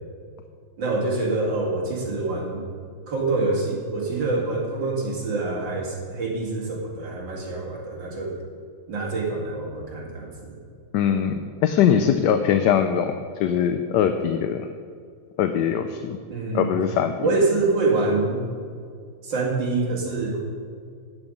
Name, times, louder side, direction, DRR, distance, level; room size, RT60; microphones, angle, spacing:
voice 1, 0.8-2.6 3.1-8.4 8.9-10.6 16.3-16.8 17.2-18.5 19.2-20.4, right 3 dB, 75° right, -2 dB, 3.0 m, -25 dB
voice 2, 10.9-14.7 15.4-16.2 16.5-17.1, left 8 dB, 75° left, 8 dB, 1.2 m, -22 dB
12.5 x 9.8 x 5.2 m, 2.2 s
omnidirectional pair, 2.0 m